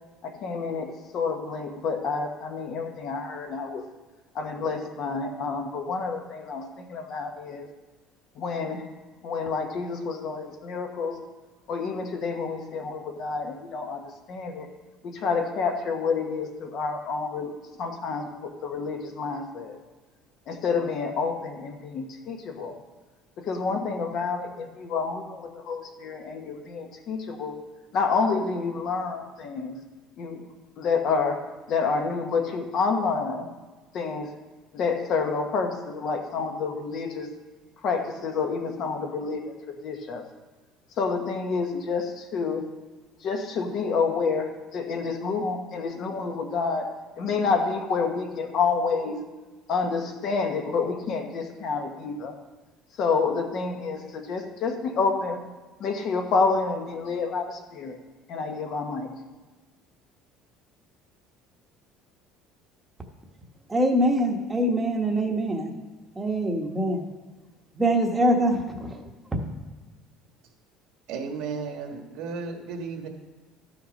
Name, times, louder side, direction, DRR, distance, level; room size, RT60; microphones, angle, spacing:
voice 1, 0.2-3.9 4.3-7.7 8.3-8.8 9.2-11.2 11.7-14.0 14.3-14.7 15.0-17.5 17.8-19.8 20.5-22.7 23.4-27.6 27.9-29.8 30.2-30.5 30.8-33.5 33.9-34.3 34.7-37.3 37.8-40.2 41.0-42.6 43.2-46.9 47.2-49.2 49.7-52.3 53.0-55.4 55.8-58.0 58.3-59.1, left 4 dB, 50° left, 4 dB, 1.2 m, -28 dB
voice 2, 63.7-65.7 66.2-67.0 67.7-69.0 69.3-69.5, right 1 dB, 10° right, 2 dB, 1.1 m, -24 dB
voice 3, 71.1-73.1, right 5 dB, 70° right, 4 dB, 1.4 m, -34 dB
13.0 x 5.9 x 5.2 m, 1.3 s
cardioid pair, 150°, 0 cm